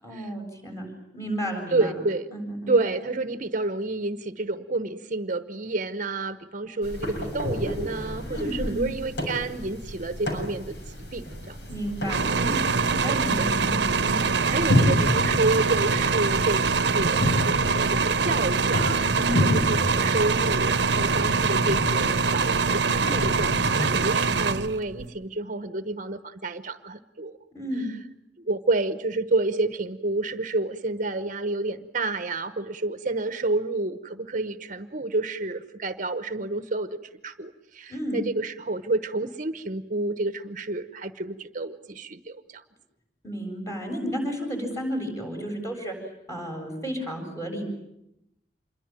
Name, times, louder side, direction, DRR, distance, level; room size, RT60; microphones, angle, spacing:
voice 1, 0.0-1.9 2.3-2.7 8.3-8.8 11.7-12.6 12.9-14.2 19.2-19.6 27.5-27.9 37.9-38.2 43.2-45.9 46.3-47.6, equal, 20° left, 2 dB, 7.8 m, -32 dB
voice 2, 1.7-2.3 2.7-11.6 12.3-12.6 13.1-13.5 14.0-16.7 16.9-27.4 28.5-42.6, right 2 dB, 45° right, 10 dB, 1.0 m, -29 dB
sound 1, 6.8-23.9, left 1 dB, 75° left, 7.0 m, -30 dB
sound 2, 12.1-25.1, right 4 dB, 75° right, 0.9 m, -24 dB
27.5 x 22.5 x 9.0 m, 0.84 s
head